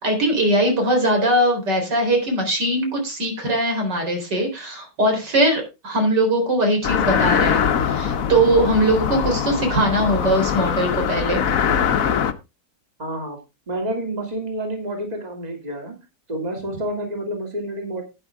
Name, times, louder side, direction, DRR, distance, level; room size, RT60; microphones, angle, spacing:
voice 1, 0.0-11.4, right 1 dB, 85° right, 4 dB, 4.6 m, -21 dB
sound 1, 6.8-12.3, left 7 dB, 60° left, 1.2 m, -22 dB
voice 2, 13.0-13.4 13.7-15.9 16.3-18.0, right 1 dB, 25° right, 3 dB, 2.7 m, -29 dB
12.0 x 9.2 x 3.5 m, 0.26 s
omnidirectional pair, 1.8 m